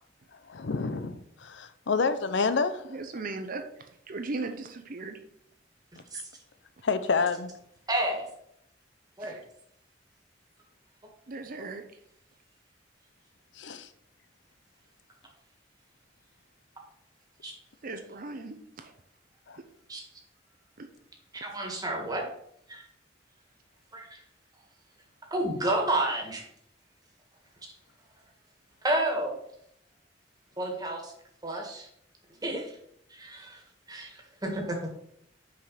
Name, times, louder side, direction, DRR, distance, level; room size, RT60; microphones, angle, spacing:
voice 1, 0.5-2.8 6.8-7.5 13.6-13.9 19.5-19.6, left 4 dB, 75° left, 0.6 m, -28 dB
voice 2, 2.9-3.6 4.1-5.2 9.2-9.4 11.3-11.8 17.8-18.9 20.8-20.9 21.5-21.6, right 3 dB, 50° right, 0.7 m, -37 dB
voice 3, 7.9-8.3 9.2-9.4 11.6-11.7 17.4-17.5 19.9-20.0 21.3-22.2 22.7-22.8 23.9-24.2 25.3-26.4 28.8-29.3 30.6-31.1 31.4-31.9 32.4-32.8 33.1-33.6 33.9-35.0, right 1 dB, 20° right, 1.7 m, -30 dB
5.9 x 5.0 x 5.6 m
head